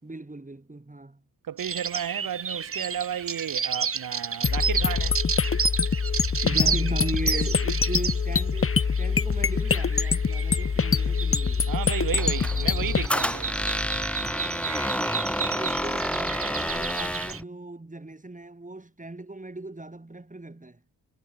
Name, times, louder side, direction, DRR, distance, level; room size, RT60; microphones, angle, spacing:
voice 1, 0.0-1.2 6.4-11.7 14.8-20.8, right 2 dB, 20° right, 6.8 m, -38 dB
voice 2, 1.4-5.2 11.7-13.5, right 9 dB, 60° right, 1.2 m, -33 dB
sound 1, 1.6-17.4, right 6 dB, 35° right, 1.0 m, -32 dB
sound 2, 4.4-13.1, left 5 dB, 35° left, 1.3 m, -24 dB
Squeak, 12.1-17.4, equal, 5° left, 1.9 m, -29 dB
supercardioid pair, 55°, 38 cm